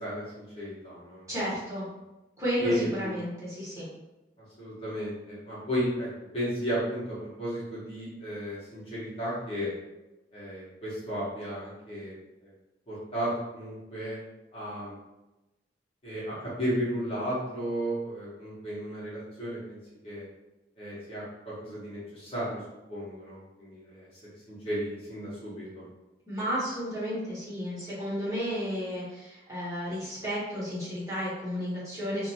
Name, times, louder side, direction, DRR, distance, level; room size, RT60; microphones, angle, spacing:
voice 1, 0.0-1.3 2.6-3.1 4.6-6.1 6.3-9.7 10.3-12.1 12.4-12.5 12.9-14.2 14.5-14.9 16.0-19.8 20.0-20.2 20.8-22.6 22.9-24.1 24.5-25.8, equal, 35° left, -8 dB, 0.8 m, -34 dB
voice 2, 1.3-1.9 2.4-3.9 26.3-32.3, equal, 20° right, -10 dB, 1.0 m, -32 dB
2.5 x 2.2 x 2.7 m, 1.0 s
head